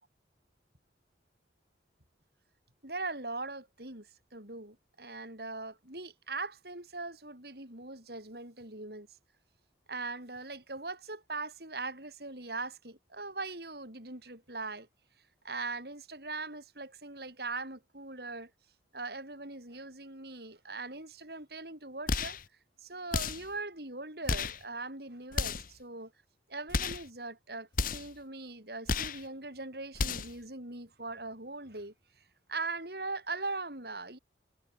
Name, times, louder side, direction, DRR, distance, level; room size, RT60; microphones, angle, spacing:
voice 1, 2.8-9.1 9.9-14.9 15.4-18.5 18.9-22.4 22.8-26.1 26.5-31.9 32.5-34.2, right 3 dB, 60° right, 7.4 m, -40 dB
sound 1, 22.1-22.5 23.1-23.5 24.3-24.6 25.3-25.8 26.7-27.1 27.7-28.2 28.9-29.2 29.9-30.4, left 4 dB, 50° left, 1.1 m, -32 dB
head